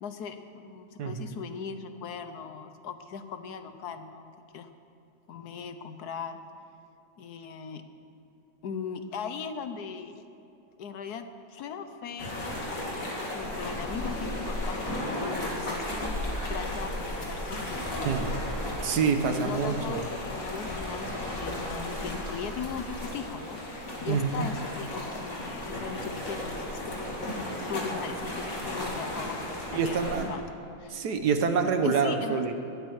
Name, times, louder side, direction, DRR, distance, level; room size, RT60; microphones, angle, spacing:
voice 1, 0.0-4.7 5.3-6.4 7.2-7.8 8.6-10.3 10.8-12.6 13.3-16.1 16.5-18.5 19.4-26.8 27.7-30.5 30.8-31.0 31.8-32.5, left 6 dB, 80° left, 9 dB, 1.4 m, -39 dB
voice 2, 1.0-1.3 18.1-18.3 18.8-20.0 24.1-24.5 29.7-30.3 30.9-32.5, right 5 dB, 85° right, 7 dB, 1.6 m, -27 dB
sound 1, 12.2-30.2, left 1 dB, 60° left, 3.1 m, -34 dB
20.5 x 12.5 x 4.8 m, 2.7 s
omnidirectional pair, 1.7 m